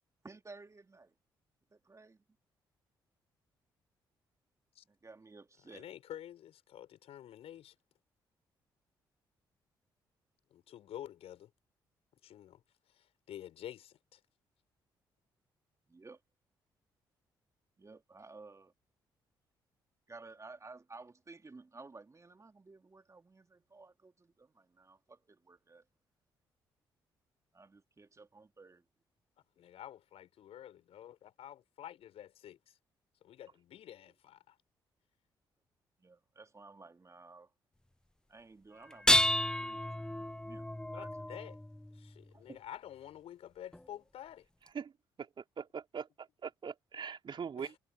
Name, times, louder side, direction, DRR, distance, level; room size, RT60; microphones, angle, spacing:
voice 1, 0.2-1.1 1.7-2.2 4.9-5.9 15.9-16.2 17.8-18.7 20.1-25.8 27.5-28.8 36.0-37.5 38.3-41.2 42.3-42.6, right 3 dB, 25° right, 3.1 m, -55 dB
voice 2, 5.7-7.7 10.5-11.5 12.2-12.6 13.0-14.2 29.6-32.7 33.2-34.6 40.9-41.6 41.9-44.5 47.6-47.8, left 11 dB, 60° left, 6.1 m, -49 dB
sound 1, 38.9-42.2 43.7-43.8 44.7-44.8, left 1 dB, 5° left, 0.7 m, -31 dB
voice 3, 45.2-47.8, right 6 dB, 45° right, 3.3 m, -42 dB
figure-of-eight pair, 40°, 11 cm